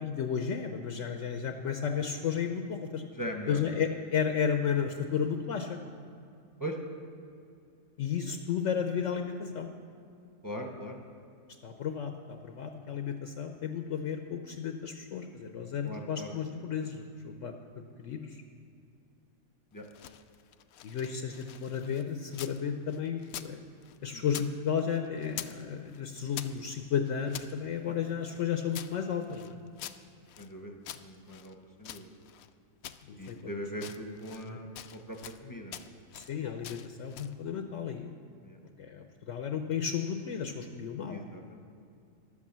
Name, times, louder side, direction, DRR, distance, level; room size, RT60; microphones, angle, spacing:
voice 1, 0.0-3.0 3.5-5.8 8.0-9.7 11.6-17.5 18.0-18.4 20.8-23.6 24.0-29.6 33.1-33.4 34.4-34.6 36.1-38.1 38.8-41.2, left 7 dB, 65° left, 5 dB, 1.0 m, -33 dB
voice 2, 3.1-3.6 6.6-6.8 10.4-11.0 15.8-16.3 19.7-19.9 24.1-24.2 27.9-28.0 30.4-32.1 33.2-35.9 38.4-38.6 41.1-41.6, equal, 15° left, 3 dB, 0.9 m, -40 dB
sound 1, 19.7-22.6 22.9-24.5 24.8-25.6 25.9-27.5 28.0-30.5 30.8-32.5 32.8-33.4 33.7-34.5 34.7-35.4 35.7-36.3 36.6-37.4, left 11 dB, 85° left, 1.0 m, -45 dB
11.5 x 8.5 x 7.3 m, 2.5 s
omnidirectional pair, 1.4 m